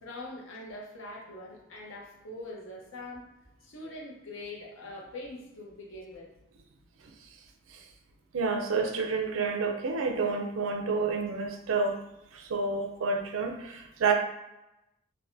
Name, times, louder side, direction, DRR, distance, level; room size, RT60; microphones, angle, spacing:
voice 1, 0.0-3.3 3.6-6.3, left 2 dB, 85° left, -1 dB, 0.7 m, -43 dB
voice 2, 8.3-12.0 12.3-14.1, right 4 dB, 85° right, 4 dB, 0.4 m, -29 dB
3.3 x 2.1 x 2.6 m, 0.94 s
head